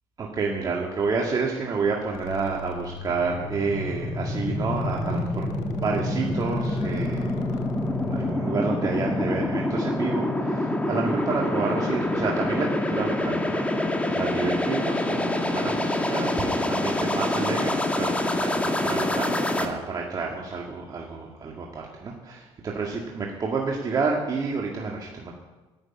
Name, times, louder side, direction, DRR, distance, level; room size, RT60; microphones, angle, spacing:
voice 1, 0.2-5.5 5.7-7.4 8.0-25.3, right 4 dB, 35° right, -2 dB, 2.0 m, -29 dB
sound 1, 2.1-8.3, left 6 dB, 90° left, 1.2 m, -39 dB
sound 2, 3.2-19.6, left 1 dB, 10° left, 1.7 m, -26 dB
11.0 x 8.2 x 9.6 m, 1.2 s
supercardioid pair, 100°, 11 cm